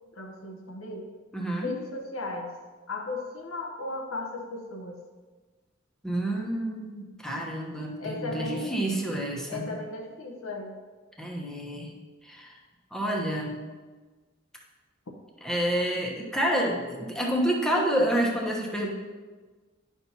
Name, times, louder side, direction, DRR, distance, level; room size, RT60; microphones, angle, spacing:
voice 1, 0.1-1.1 1.6-2.5 2.9-5.0 8.0-8.9 9.5-10.8, left 2 dB, 80° left, 2 dB, 0.8 m, -36 dB
voice 2, 1.3-1.7 6.0-9.7 11.2-11.9 12.2-12.5 12.9-13.6 15.4-18.9, right 1 dB, 5° left, -2 dB, 1.0 m, -28 dB
10.0 x 6.1 x 2.8 m, 1.4 s
head